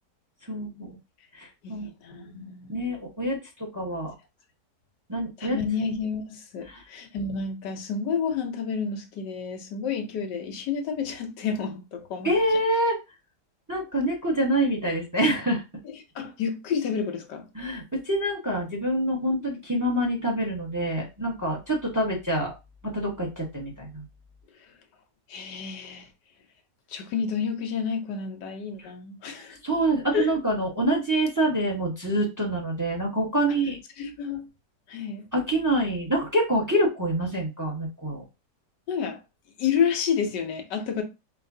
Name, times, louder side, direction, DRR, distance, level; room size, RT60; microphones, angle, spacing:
voice 1, 0.5-0.9 1.3-4.1 5.1-5.6 6.7-6.8 12.2-13.0 13.7-15.6 17.5-22.5 22.8-24.0 29.6-33.8 35.3-38.2, right 1 dB, 15° right, 1.0 m, -26 dB
voice 2, 1.6-2.8 5.4-12.3 15.8-17.5 25.3-26.1 26.9-29.6 30.1-30.3 34.0-34.5 34.9-35.2 38.9-39.2 39.6-41.0, left 6 dB, 80° left, 1.5 m, -30 dB
4.6 x 3.1 x 2.7 m
omnidirectional pair, 1.8 m